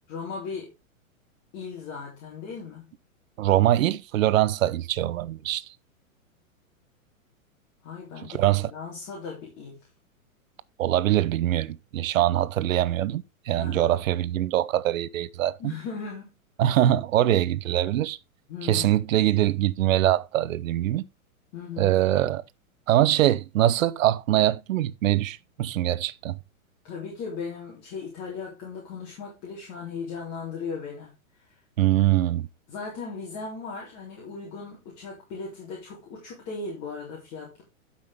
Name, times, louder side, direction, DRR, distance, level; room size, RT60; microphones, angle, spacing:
voice 1, 0.1-0.7 1.5-2.9 7.8-9.8 13.6-14.0 15.6-16.3 16.6-16.8 18.5-19.0 21.5-22.0 26.8-31.1 32.7-37.6, left 5 dB, 40° left, 3.8 m, -37 dB
voice 2, 3.4-5.6 8.3-8.7 10.8-15.7 16.6-18.2 18.6-21.0 21.8-22.4 22.9-26.4 31.8-32.5, right 13 dB, 70° right, 0.8 m, -23 dB
12.0 x 5.7 x 3.5 m
hypercardioid pair, 140°, 42 cm